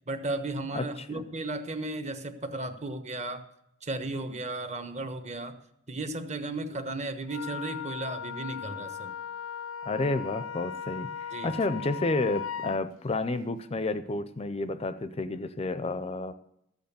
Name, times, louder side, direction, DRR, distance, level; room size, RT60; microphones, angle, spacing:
voice 1, 0.1-3.4 3.8-5.6 5.9-9.1 11.3-11.5, right 2 dB, 35° right, 8 dB, 1.2 m, -35 dB
voice 2, 0.7-1.2 9.8-16.3, left 2 dB, 30° left, 12 dB, 0.5 m, -31 dB
Wind instrument woodwind instrument, 7.3-12.8, left 8 dB, 80° left, 0.5 m, -38 dB
14.0 x 8.0 x 6.8 m, 0.79 s
head